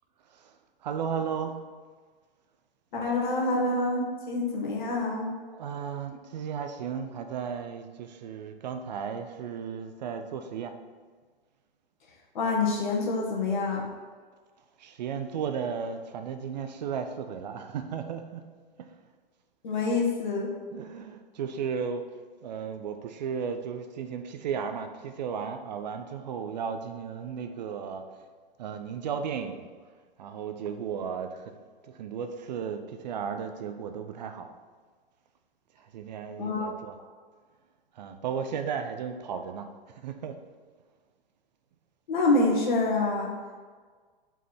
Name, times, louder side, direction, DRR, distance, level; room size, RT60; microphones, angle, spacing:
voice 1, 0.8-1.6 5.4-10.8 14.8-18.4 20.7-22.1 22.4-28.0 28.6-29.7 30.2-31.5 31.9-34.5 35.8-37.0 38.0-39.7 40.0-40.4, right 7 dB, 45° right, 7 dB, 0.7 m, -34 dB
voice 2, 2.9-5.3 12.3-13.9 19.6-20.5 36.4-36.7 42.1-43.3, left 2 dB, 55° left, -1 dB, 2.0 m, -26 dB
5.6 x 4.9 x 5.9 m, 1.5 s
figure-of-eight pair, 110°, 29 cm